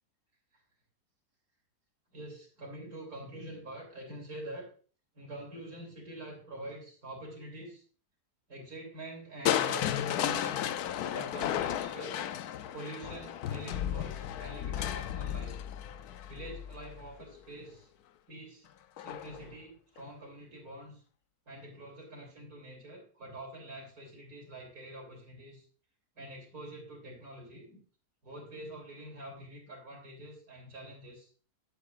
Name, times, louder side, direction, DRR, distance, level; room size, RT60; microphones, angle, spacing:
voice 1, 2.1-4.7 5.1-7.8 8.5-10.8 11.1-12.3 12.7-15.5 16.3-17.9 18.3-18.7 19.0-21.0 21.5-25.7 26.2-27.8 28.2-31.3, right 1 dB, 65° right, -1 dB, 3.8 m, -46 dB
Crushing, 9.5-17.4 19.0-19.5 20.0-20.1, left 10 dB, 75° left, 1.1 m, -34 dB
11.0 x 8.9 x 2.5 m, 0.41 s
omnidirectional pair, 1.7 m